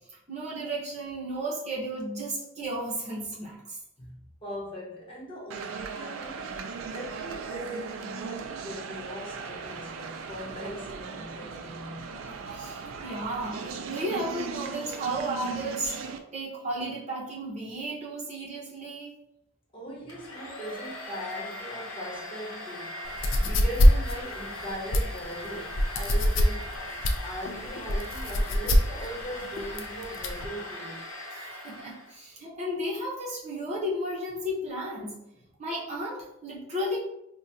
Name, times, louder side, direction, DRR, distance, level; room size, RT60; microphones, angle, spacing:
voice 1, 0.3-3.8 12.1-15.9 16.3-19.1 27.0-27.1 31.6-35.2 35.6-37.0, right 1 dB, 35° right, -5 dB, 0.8 m, -34 dB
voice 2, 4.0-12.1 19.7-23.1 23.4-26.8 27.2-31.1, equal, 25° left, -5 dB, 0.7 m, -40 dB
sound 1, 5.5-16.2, right 5 dB, 80° right, 0.4 m, -38 dB
Domestic sounds home sounds, 20.1-32.2, left 1 dB, 85° left, 0.8 m, -40 dB
sound 2, 23.0-30.5, equal, 65° left, 0.4 m, -24 dB
4.6 x 2.2 x 2.7 m, 0.82 s
head